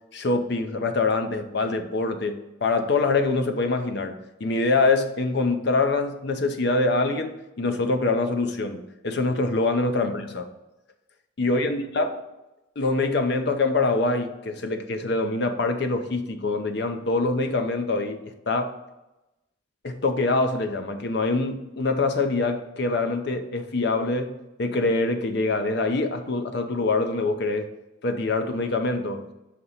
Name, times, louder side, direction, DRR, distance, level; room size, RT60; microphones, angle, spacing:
voice 1, 0.1-10.5 11.4-12.2 12.8-18.7 19.8-27.7 28.0-29.3, left 3 dB, 55° left, 7 dB, 0.6 m, -25 dB
6.5 x 3.0 x 5.4 m, 0.96 s
head